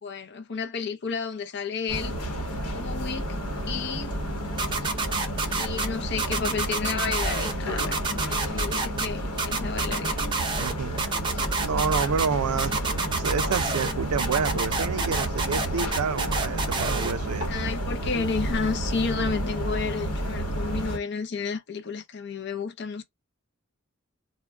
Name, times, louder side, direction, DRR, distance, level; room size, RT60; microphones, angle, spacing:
voice 1, 0.0-2.1 2.7-3.3 3.7-4.2 5.6-10.3 17.5-23.0, left 5 dB, 50° left, 0.5 m, -31 dB
sound 1, 1.9-21.0, right 1 dB, 85° left, 1.0 m, -31 dB
sound 2, 4.6-5.9 6.2-7.5 7.8-9.1 9.4-10.7 11.0-12.3 12.6-13.9 14.2-17.1, right 3 dB, 20° right, 0.4 m, -28 dB
voice 2, 10.6-11.1 11.6-17.5, right 6 dB, 80° right, 0.4 m, -29 dB
2.2 x 2.2 x 3.4 m
head